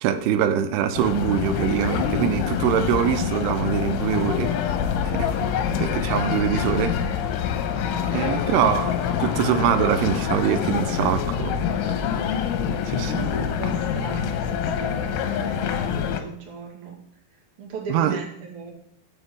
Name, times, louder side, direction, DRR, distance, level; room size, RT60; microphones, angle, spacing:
voice 1, 0.0-4.5 5.1-5.5 5.8-7.0 8.1-8.9 9.2-11.6 12.9-13.1 17.9-18.2, right 9 dB, 90° right, 9 dB, 2.3 m, -23 dB
sound 1, 0.9-16.2, left 8 dB, 85° left, 3.3 m, -25 dB
voice 2, 6.6-7.2 8.1-8.4 13.0-17.0 17.6-18.7, right 4 dB, 45° right, -1 dB, 1.8 m, -37 dB
8.2 x 5.6 x 7.6 m, 0.72 s
omnidirectional pair, 5.4 m